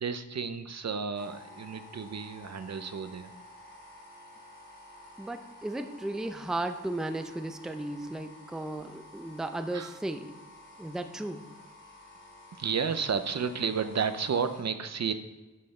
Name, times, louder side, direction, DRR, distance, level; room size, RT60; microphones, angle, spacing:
voice 1, 0.0-3.3 9.7-10.0 12.5-15.1, right 6 dB, 55° right, 10 dB, 0.6 m, -32 dB
sound 1, 1.1-14.6, left 1 dB, 35° left, 2.2 m, -52 dB
voice 2, 5.2-10.3 10.8-11.4, right 1 dB, ahead, 8 dB, 0.5 m, -35 dB
12.0 x 5.8 x 4.2 m, 1.2 s
wide cardioid pair, 125°, 33 cm